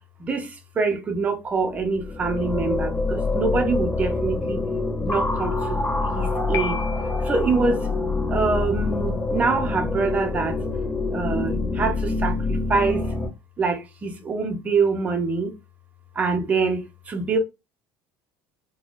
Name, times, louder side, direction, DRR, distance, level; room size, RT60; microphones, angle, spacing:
voice 1, 0.8-4.6 5.0-5.5 6.1-6.8 7.3-7.8 8.3-10.5 11.1-12.3 12.7-13.0 13.6-15.5 16.2-16.8 17.1-17.4, right 4 dB, 25° right, 0.7 m, -24 dB
sound 1, 1.7-13.3, left 3 dB, 25° left, 1.3 m, -26 dB
Piano, 6.5-7.5, left 8 dB, 55° left, 0.7 m, -33 dB
3.3 x 2.2 x 2.5 m
cardioid pair, 135°, 6 cm